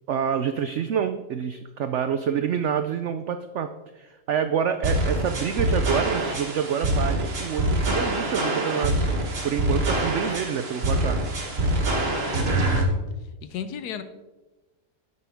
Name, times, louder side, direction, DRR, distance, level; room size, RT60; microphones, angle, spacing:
voice 1, 0.1-9.0 9.4-11.2, right 8 dB, 85° right, 9 dB, 0.6 m, -27 dB
sound 1, 4.8-12.8, right 1 dB, 40° right, 1.4 m, -25 dB
voice 2, 12.0-12.7 13.4-14.0, left 8 dB, 70° left, 11 dB, 1.3 m, -34 dB
11.0 x 8.3 x 3.4 m, 1.1 s
omnidirectional pair, 1.8 m